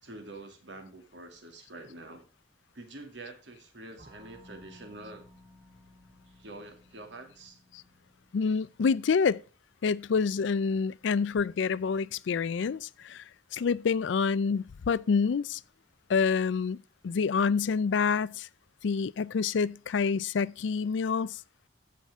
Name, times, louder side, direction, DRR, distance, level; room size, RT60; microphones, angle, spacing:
voice 1, 0.0-2.2 2.7-5.3 6.3-7.6, right 2 dB, 70° right, 2.3 m, -46 dB
sound 1, 4.0-10.3, left 1 dB, 35° right, 1.9 m, -57 dB
voice 2, 8.3-9.4 9.8-13.2 13.5-15.6 16.1-16.8 17.0-18.5 18.8-21.4, left 5 dB, 75° left, 0.4 m, -27 dB
14.5 x 5.8 x 3.5 m
head